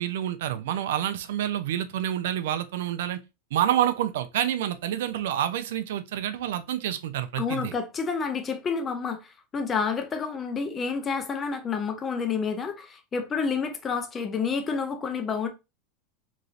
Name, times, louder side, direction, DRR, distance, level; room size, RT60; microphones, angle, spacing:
voice 1, 0.0-3.2 3.5-7.7, right 11 dB, 75° right, 0.4 m, -28 dB
voice 2, 7.4-15.5, left 5 dB, 15° left, 0.4 m, -29 dB
3.0 x 2.6 x 2.4 m
supercardioid pair, 170°, 0 cm